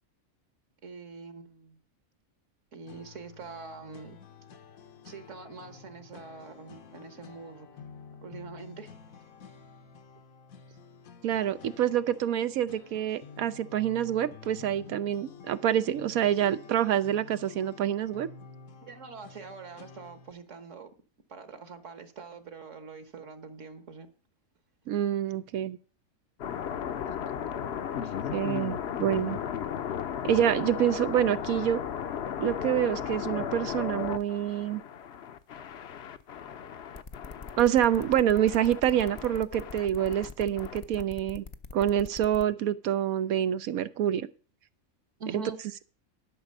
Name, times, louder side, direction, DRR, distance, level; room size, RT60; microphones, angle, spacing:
voice 1, 0.8-1.8 2.7-4.2 5.0-7.8 8.2-8.9 18.8-20.9 21.3-24.1 27.1-27.2 28.0-28.1 45.2-45.6, right 5 dB, 60° right, 11 dB, 1.5 m, -44 dB
sound 1, 2.9-20.3, left 5 dB, 75° left, 1.5 m, -50 dB
voice 2, 11.2-18.3 24.9-25.8 28.3-29.4 30.2-31.8 32.4-34.8 37.6-41.4 41.7-44.3, right 10 dB, 80° right, 14 dB, 1.2 m, -27 dB
sound 2, 26.4-41.0, left 8 dB, 55° left, 0.9 m, -36 dB
sound 3, 36.9-42.4, left 4 dB, 40° left, 0.4 m, -43 dB
12.0 x 6.0 x 6.6 m, 0.39 s
omnidirectional pair, 1.5 m